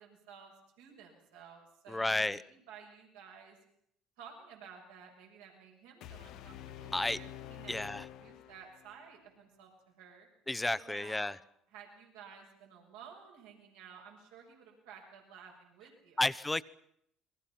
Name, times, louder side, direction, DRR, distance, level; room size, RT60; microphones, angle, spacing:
voice 1, 0.0-3.6 4.2-10.3 10.6-11.4 11.7-16.2, right 7 dB, 85° right, 0 dB, 6.6 m, -54 dB
voice 2, 1.9-2.4 6.9-7.2 7.7-8.1 10.5-11.4 16.2-16.6, left 2 dB, 15° left, 16 dB, 1.0 m, -32 dB
sound 1, 6.0-9.1, left 12 dB, 70° left, 1.1 m, -48 dB
29.0 x 22.5 x 5.9 m, 0.71 s
hypercardioid pair, 70°, 0 cm